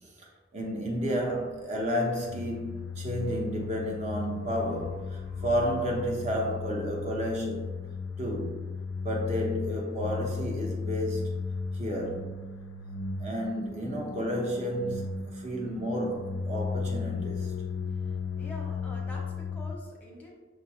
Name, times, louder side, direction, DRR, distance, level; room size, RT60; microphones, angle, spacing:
voice 1, 0.5-7.8 8.2-8.6 9.0-11.4 11.7-12.3 13.2-17.5, equal, 35° right, 0.7 m, -31 dB
sound 1, 1.0-19.8, left 5 dB, 70° left, 0.3 m, -35 dB
voice 2, 17.9-20.4, equal, 5° left, 0.8 m, -46 dB
6.1 x 2.4 x 2.9 m
head